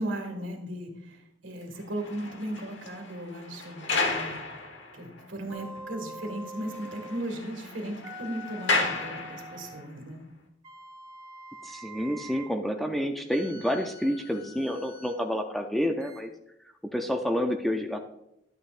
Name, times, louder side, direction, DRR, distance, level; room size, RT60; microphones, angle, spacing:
voice 1, 0.0-4.4 4.9-10.2, right 1 dB, 80° right, 3 dB, 1.8 m, -36 dB
sound 1, 1.8-5.2 5.8-5.9 6.2-6.3 6.6-9.8, left 3 dB, 70° left, 1.2 m, -33 dB
sound 2, 5.5-7.3 8.0-9.9 10.6-12.6 13.3-15.2 16.0-16.2, equal, 15° right, 2.0 m, -45 dB
voice 2, 11.6-16.3 16.9-18.0, equal, ahead, 4 dB, 0.5 m, -29 dB
11.5 x 8.8 x 2.5 m, 0.83 s
head